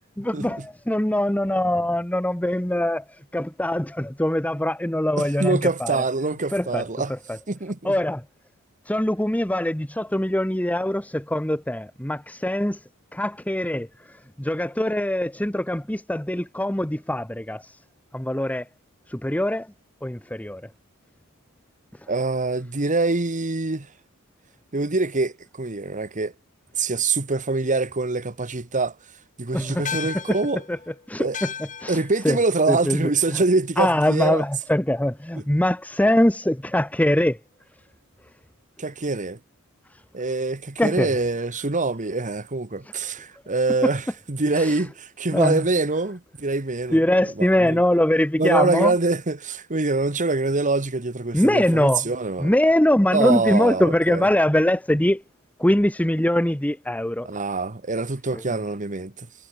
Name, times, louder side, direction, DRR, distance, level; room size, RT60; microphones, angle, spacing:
voice 1, 0.2-6.0 6.5-7.4 7.8-8.2 8.8-12.8 13.1-17.8 18.1-18.7 19.1-19.7 20.0-20.7 29.5-29.9 30.1-30.4 30.7-30.8 31.1-31.5 31.8-32.4 32.7-33.4 33.8-37.4 39.9-40.0 40.8-41.2 44.5-44.8 45.3-45.6 46.9-48.9 51.3-52.1 52.4-55.2 55.6-57.3 58.3-58.4, left 1 dB, 5° left, 1.1 m, -23 dB
voice 2, 5.2-7.1 7.5-7.9 22.1-23.9 24.7-26.3 26.7-28.9 29.4-30.6 31.2-31.4 31.9-34.4 38.8-39.4 40.1-47.0 47.4-47.8 48.4-52.5 53.1-54.3 57.2-59.3, right 3 dB, 35° right, 1.4 m, -24 dB
sound 1, 29.9-34.5, left 7 dB, 35° left, 1.5 m, -38 dB
head